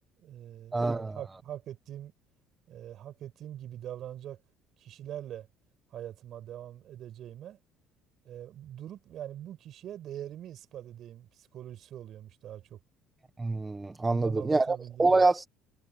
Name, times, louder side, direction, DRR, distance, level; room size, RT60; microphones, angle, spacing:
voice 1, 0.2-2.1 2.7-4.4 4.8-5.5 5.9-7.6 8.2-12.8 14.0-15.2, right 11 dB, 45° right, 7.0 m, -43 dB
voice 2, 0.7-1.2 13.4-15.5, right 3 dB, 10° right, 1.2 m, -26 dB
cardioid pair, 160°, 0 cm